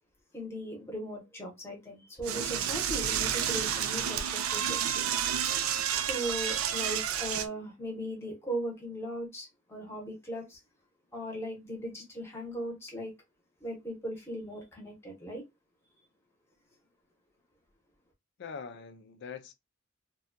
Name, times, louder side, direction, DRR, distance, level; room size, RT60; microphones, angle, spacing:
voice 1, 0.3-5.2 6.0-10.6 11.1-13.1 13.6-15.4, right 1 dB, 10° left, 0.9 m, -38 dB
Door / Toilet flush, 2.2-7.5, right 9 dB, 85° right, 0.4 m, -30 dB
voice 2, 18.4-19.5, left 6 dB, 55° left, 0.4 m, -43 dB
2.6 x 2.2 x 2.5 m
head